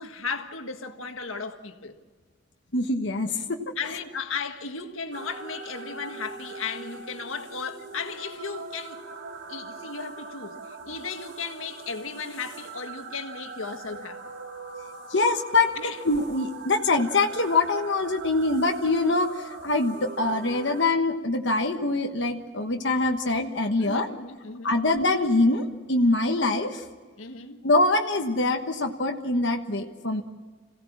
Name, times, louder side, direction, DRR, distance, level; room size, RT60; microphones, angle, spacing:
voice 1, 0.0-2.0 3.8-9.0 9.5-14.2 15.7-16.0 23.8-24.8 27.2-27.6, left 5 dB, 85° left, 1.6 m, -35 dB
voice 2, 2.7-3.6 15.1-15.7 16.0-24.1 24.6-26.8 27.6-30.2, left 2 dB, 60° left, 1.3 m, -24 dB
sound 1, 5.1-20.8, right 4 dB, 65° right, 1.9 m, -41 dB
26.5 x 17.0 x 7.3 m
head